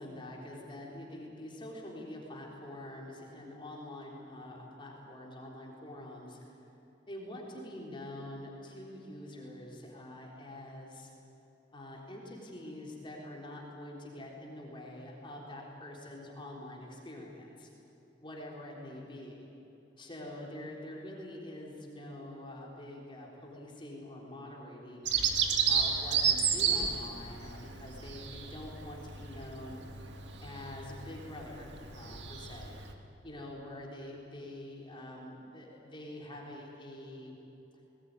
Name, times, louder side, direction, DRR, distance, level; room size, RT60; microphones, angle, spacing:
voice 1, 0.0-6.4 7.1-11.1 11.7-17.7 18.2-19.5 20.0-25.1 25.7-29.8 30.4-32.8 33.2-37.4, left 1 dB, 30° left, -2 dB, 3.8 m, -45 dB
Bird vocalization bird call bird song, 25.0-32.9, right 6 dB, 70° right, 1.8 m, -32 dB
20.0 x 19.0 x 9.7 m, 3.0 s
head